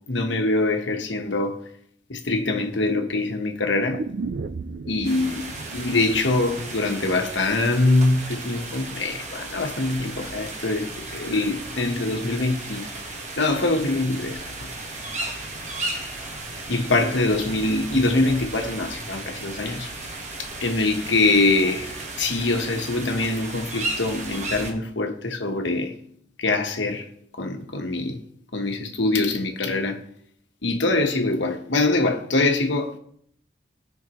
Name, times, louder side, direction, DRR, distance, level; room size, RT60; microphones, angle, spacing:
voice 1, 0.1-1.6 2.1-4.1 4.9-5.5 5.7-12.9 13.4-14.7 16.7-19.9 20.4-26.0 26.4-28.2 28.5-30.0 30.6-33.0, left 2 dB, 75° left, 1.3 m, -24 dB
sound 1, 3.9-8.0 8.3-8.4, right 4 dB, 55° right, 0.4 m, -36 dB
sound 2, 5.0-24.7, right 2 dB, 40° right, 1.3 m, -35 dB
16.5 x 5.7 x 3.1 m
head